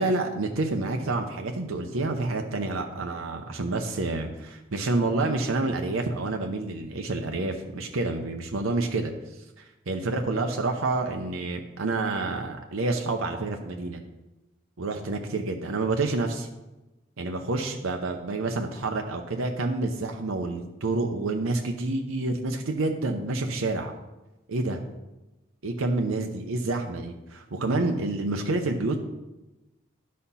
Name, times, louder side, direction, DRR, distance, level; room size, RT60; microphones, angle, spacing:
voice 1, 0.0-9.1 9.6-14.0 14.8-16.5 17.2-23.9 24.5-24.8 25.6-29.0, right 2 dB, 85° right, 4 dB, 0.7 m, -28 dB
11.0 x 4.3 x 5.5 m, 1.0 s
head